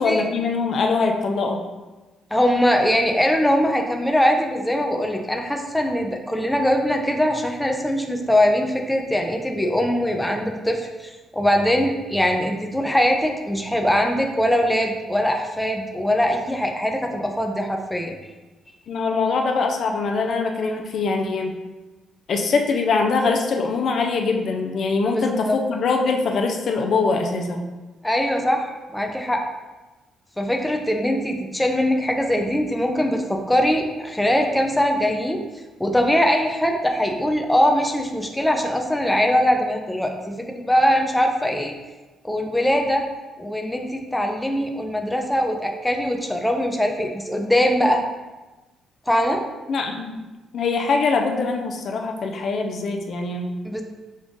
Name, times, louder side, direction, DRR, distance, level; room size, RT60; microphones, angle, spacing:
voice 1, 0.0-1.6 18.9-21.5 22.3-27.6 49.7-50.1 50.5-53.6, left 4 dB, 60° left, 3 dB, 0.5 m, -23 dB
voice 2, 2.3-18.2 25.1-25.6 28.0-29.4 30.4-35.4 35.8-41.7 42.2-43.1 43.4-48.0 49.1-49.4 53.6-53.8, equal, 5° left, 2 dB, 0.5 m, -22 dB
5.3 x 2.5 x 3.6 m, 1.1 s
cardioid pair, 90°, 0 cm